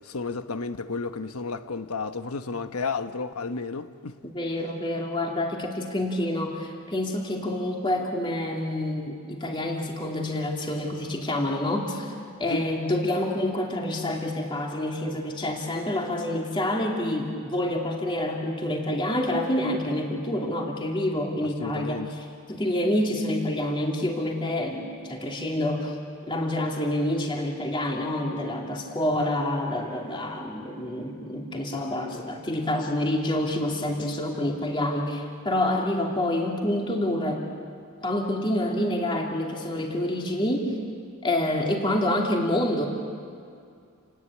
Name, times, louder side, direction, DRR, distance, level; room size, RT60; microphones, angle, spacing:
voice 1, 0.0-4.2 12.5-12.6 21.6-22.1 29.2-29.3, left 4 dB, 85° left, 1.1 m, -32 dB
voice 2, 4.2-12.1 12.4-26.0 26.3-37.5 38.0-40.8 41.2-42.9, left 1 dB, 20° left, 2.7 m, -27 dB
29.0 x 19.5 x 8.6 m
head